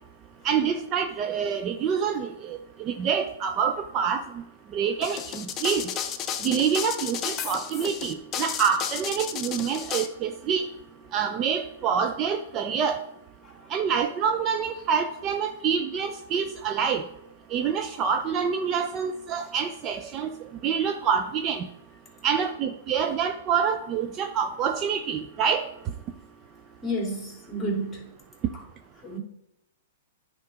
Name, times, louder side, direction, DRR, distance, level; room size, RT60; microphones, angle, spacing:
voice 1, 0.4-4.4 4.7-5.9 6.4-10.7 11.1-13.0 13.7-17.0 17.5-20.3 20.6-21.7 22.2-25.7, right 7 dB, 30° right, 7 dB, 0.5 m, -26 dB
sound 1, 5.0-10.1, left 8 dB, 25° left, 0.6 m, -32 dB
voice 2, 26.8-28.1 29.0-29.2, right 1 dB, 10° left, -2 dB, 2.5 m, -31 dB
9.6 x 3.7 x 5.0 m, 0.84 s
hypercardioid pair, 135°, 0 cm